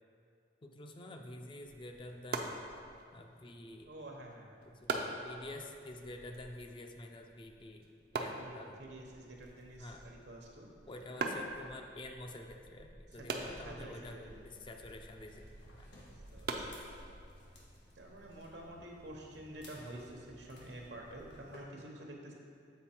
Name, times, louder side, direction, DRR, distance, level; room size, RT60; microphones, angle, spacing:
voice 1, 0.6-2.6 3.1-3.9 4.6-7.9 8.1-8.8 9.8-10.0 10.9-15.4 15.8-15.9 18.8-18.9, left 1 dB, 30° left, 3 dB, 0.4 m, -48 dB
sound 1, 1.6-17.5, right 3 dB, 60° right, 0.5 m, -44 dB
voice 2, 3.8-4.6 5.4-5.6 8.2-10.7 13.3-14.4 15.9-16.6 17.9-22.3, right 1 dB, 75° right, 0 dB, 1.0 m, -49 dB
sound 2, 14.1-21.6, left 1 dB, 85° left, 1.4 m, -59 dB
7.3 x 4.1 x 4.4 m, 2.3 s
head